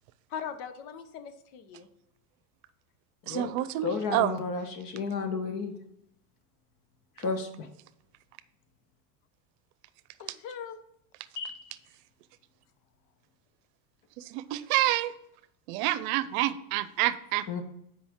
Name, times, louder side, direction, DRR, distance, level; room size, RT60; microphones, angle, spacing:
voice 1, 0.3-1.9 10.2-10.8, left 7 dB, 75° left, 11 dB, 1.0 m, -40 dB
voice 2, 3.3-4.3 14.3-15.1 15.7-17.5, right 14 dB, 65° right, 15 dB, 0.7 m, -28 dB
voice 3, 3.8-5.7 7.2-7.7 11.4-11.6 17.5-17.6, left 4 dB, 45° left, 7 dB, 1.3 m, -32 dB
8.9 x 5.1 x 3.6 m, 0.75 s
supercardioid pair, 140°, 46 cm